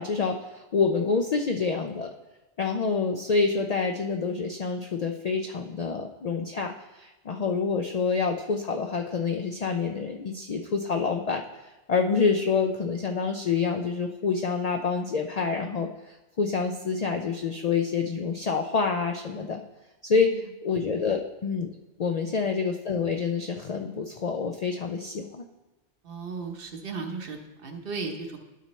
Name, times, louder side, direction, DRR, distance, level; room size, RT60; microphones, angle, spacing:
voice 1, 0.0-2.1 2.6-11.4 11.9-19.6 20.0-20.3 20.6-21.7 22.0-25.5, left 5 dB, 75° left, 4 dB, 0.3 m, -27 dB
voice 2, 26.0-28.4, right 4 dB, 50° right, 4 dB, 1.0 m, -36 dB
12.0 x 5.5 x 3.1 m, 1.1 s
omnidirectional pair, 1.3 m